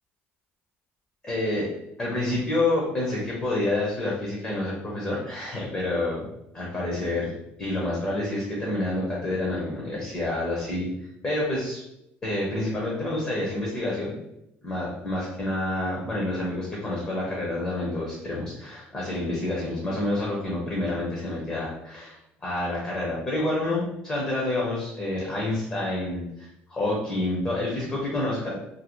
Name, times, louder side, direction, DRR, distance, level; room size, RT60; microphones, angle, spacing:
voice 1, 1.2-1.7 2.0-6.2 6.6-7.3 7.6-10.9 11.2-11.8 12.2-14.2 14.6-28.5, left 2 dB, 20° left, -4 dB, 0.6 m, -28 dB
2.7 x 2.5 x 3.0 m, 0.81 s
cardioid pair, 180°, 5 cm